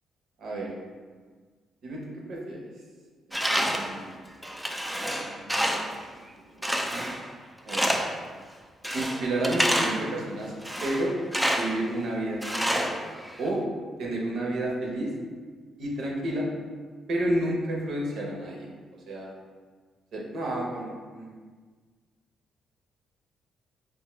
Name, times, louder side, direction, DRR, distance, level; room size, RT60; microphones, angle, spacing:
voice 1, 0.4-0.7 1.8-2.7 3.3-4.1 5.1-5.8 6.4-7.1 7.6-7.8 8.9-10.5 10.8-11.2 11.5-13.0 13.4-13.6 14.0-15.1 15.8-16.4 17.1-18.7 19.1-19.3 20.1-21.3, right 1 dB, 70° right, -2 dB, 0.8 m, -31 dB
Tools, 3.3-4.0 4.4-6.0 6.6-7.3 7.7-8.2 8.8-10.1 10.6-11.8 12.4-13.5, equal, 5° right, 0.3 m, -28 dB
3.5 x 2.6 x 3.0 m, 1.5 s
cardioid pair, 90°, 0 cm